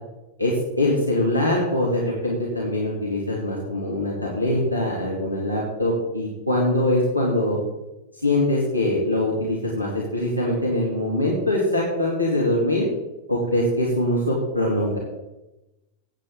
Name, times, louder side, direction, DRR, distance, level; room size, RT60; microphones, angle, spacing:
voice 1, 0.4-7.6 8.2-12.9 13.3-15.0, left 1 dB, 90° left, -4 dB, 2.5 m, -23 dB
15.0 x 9.2 x 3.7 m, 0.98 s
figure-of-eight pair, 90°, 0 cm